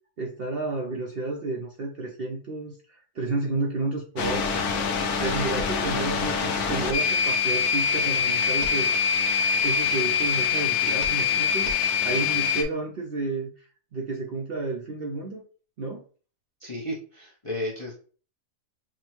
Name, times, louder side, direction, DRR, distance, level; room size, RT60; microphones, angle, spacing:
voice 1, 0.2-4.6 5.2-8.9 9.6-11.7 12.0-15.4 15.8-16.0, right 3 dB, 60° right, -1 dB, 0.6 m, -31 dB
sound 1, 4.2-12.6, left 6 dB, 80° left, 1.2 m, -24 dB
voice 2, 16.6-17.9, left 1 dB, 35° left, -3 dB, 0.5 m, -33 dB
6.1 x 2.1 x 3.0 m, 0.40 s
omnidirectional pair, 1.6 m